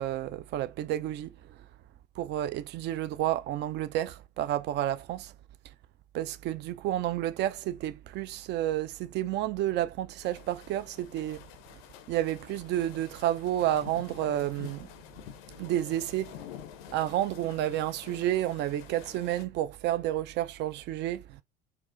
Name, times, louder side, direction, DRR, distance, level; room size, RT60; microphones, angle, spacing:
voice 1, 0.0-1.6 2.2-5.3 6.1-11.4 12.1-14.9 15.6-16.4 16.9-21.4, right 13 dB, 35° right, 0.4 m, -30 dB
sound 1, 10.2-19.5, left 10 dB, 65° left, 0.5 m, -48 dB
4.3 x 2.0 x 2.4 m
figure-of-eight pair, 65°, 31 cm